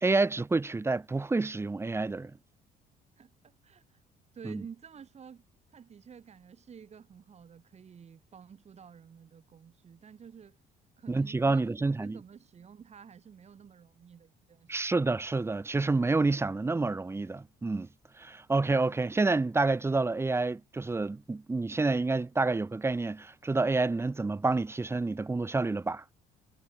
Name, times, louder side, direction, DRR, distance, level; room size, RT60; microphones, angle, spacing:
voice 1, 0.0-2.3 4.4-4.6 11.1-12.2 14.7-17.9 18.2-26.0, right 3 dB, 15° right, 1.0 m, -28 dB
voice 2, 3.2-3.8 4.3-5.4 5.7-10.6 11.0-15.1, right 7 dB, 40° right, 5.9 m, -51 dB
cardioid pair, 110°, 17 cm